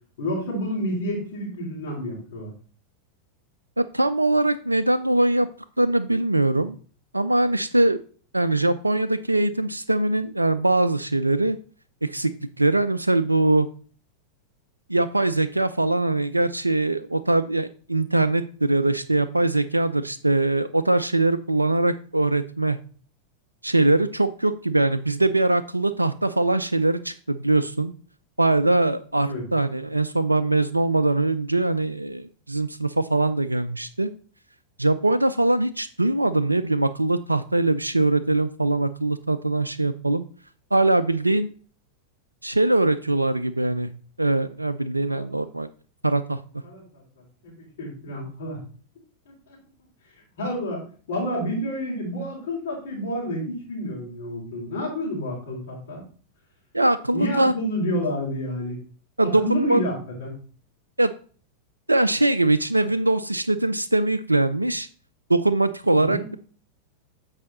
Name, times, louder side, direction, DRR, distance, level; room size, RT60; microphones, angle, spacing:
voice 1, 0.2-2.5 29.2-29.4 45.1-45.5 46.6-47.0 47.4-48.6 49.5-49.6 50.4-50.8 51.1-56.0 57.1-58.8 59.2-59.9 60.2-60.4 65.9-66.3, equal, 60° left, -5 dB, 3.3 m, -29 dB
voice 2, 3.8-5.5 5.8-6.8 7.1-8.0 8.3-11.6 12.0-12.3 12.6-13.7 14.9-22.8 23.6-27.9 28.4-34.1 34.8-40.2 40.7-41.5 42.4-43.9 44.2-45.7 46.0-46.4 56.7-57.5 59.2-59.8 61.0-61.1 61.9-64.9 65.3-66.4, right 2 dB, 85° right, 12 dB, 0.4 m, -22 dB
8.4 x 4.9 x 4.1 m, 0.42 s
figure-of-eight pair, 90°, 0 cm